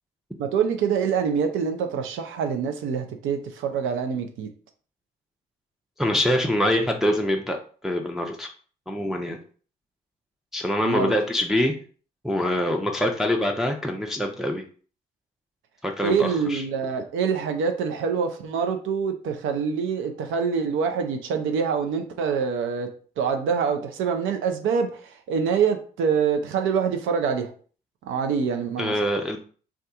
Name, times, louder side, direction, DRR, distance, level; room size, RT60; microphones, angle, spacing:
voice 1, 0.4-4.5 10.8-11.1 16.0-22.9 23.2-27.5 28.1-28.9, right 6 dB, 75° right, 0.6 m, -25 dB
voice 2, 6.0-7.6 7.8-8.5 8.9-9.4 10.5-11.8 12.2-14.6 15.8-16.6 28.8-29.4, left 1 dB, ahead, 0.5 m, -24 dB
2.6 x 2.4 x 3.5 m
hypercardioid pair, 45°, 20 cm